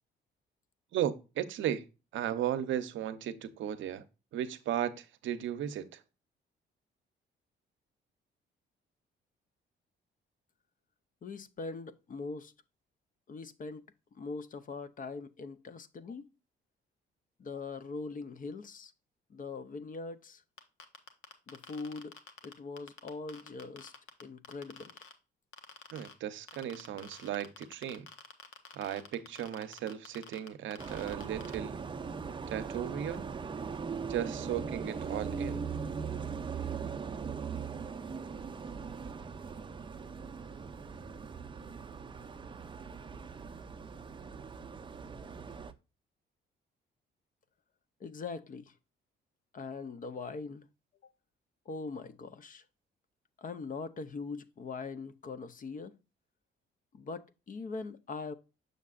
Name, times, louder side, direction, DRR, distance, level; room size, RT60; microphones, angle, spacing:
voice 1, 0.9-1.9 2.1-4.0 4.3-6.0 25.9-28.1 28.7-31.8 32.5-33.3 34.1-35.6, right 10 dB, 75° right, 0.7 m, -35 dB
voice 2, 11.2-12.5 13.3-13.8 14.1-16.2 17.4-18.9 19.3-20.4 21.5-22.2 22.4-23.9 24.2-25.0 48.0-48.7 49.5-50.7 51.7-52.6 53.4-55.9 56.9-58.3, left 4 dB, 45° left, 0.6 m, -41 dB
sound 1, 20.6-25.1 25.5-26.1 26.5-31.5, left 6 dB, 80° left, 1.0 m, -49 dB
sound 2, 30.8-45.7, right 5 dB, 25° right, 0.5 m, -40 dB
6.5 x 6.5 x 2.4 m
cardioid pair, 90°, 20 cm